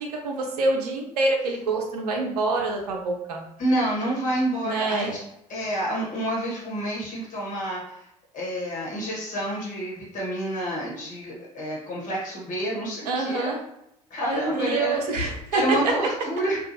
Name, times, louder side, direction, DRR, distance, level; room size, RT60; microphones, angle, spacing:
voice 1, 0.2-3.4 4.6-5.2 13.0-13.6 14.3-16.0, right 2 dB, 75° right, 1 dB, 0.5 m, -26 dB
voice 2, 3.6-5.1 5.5-8.0 8.3-13.5 14.1-15.0 15.5-16.6, right 1 dB, 40° left, -4 dB, 1.2 m, -28 dB
2.5 x 2.3 x 2.7 m, 0.81 s
figure-of-eight pair, 60°, 20 cm